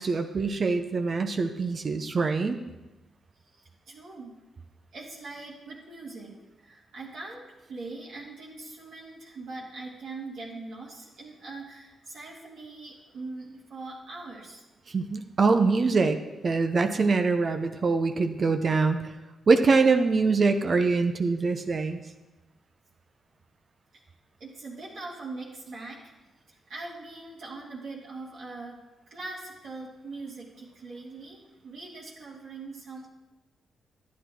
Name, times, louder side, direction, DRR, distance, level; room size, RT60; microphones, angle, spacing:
voice 1, 0.0-2.6 14.9-19.1 19.5-22.0, right 4 dB, 50° right, 7 dB, 0.9 m, -24 dB
voice 2, 3.4-4.4 4.9-14.6 24.4-26.1 26.5-33.1, right 3 dB, 75° right, -5 dB, 2.3 m, -42 dB
11.5 x 8.4 x 4.5 m, 1.1 s
supercardioid pair, 45°, 0 cm